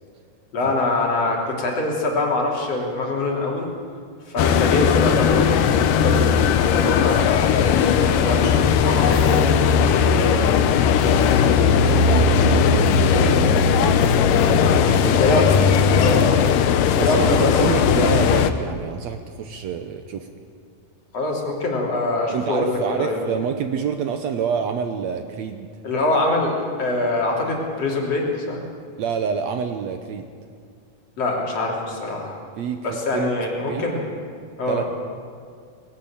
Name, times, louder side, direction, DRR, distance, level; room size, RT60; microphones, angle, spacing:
voice 1, 0.5-3.7 4.3-10.8 15.2-15.5 15.9-16.3 17.0-17.7 21.1-23.4 25.8-28.6 31.2-32.4 32.8-34.1 34.6-34.8, left 2 dB, 50° left, -1 dB, 4.1 m, -24 dB
sound 1, 4.4-18.5, left 7 dB, 85° left, 2.5 m, -17 dB
voice 2, 11.7-14.0 14.9-15.3 15.7-15.8 17.0-20.3 22.3-25.7 29.0-30.3 32.6-33.3 33.7-34.0 34.7-34.9, right 7 dB, 70° right, 7 dB, 1.9 m, -27 dB
20.0 x 18.0 x 8.8 m, 2.2 s
omnidirectional pair, 3.7 m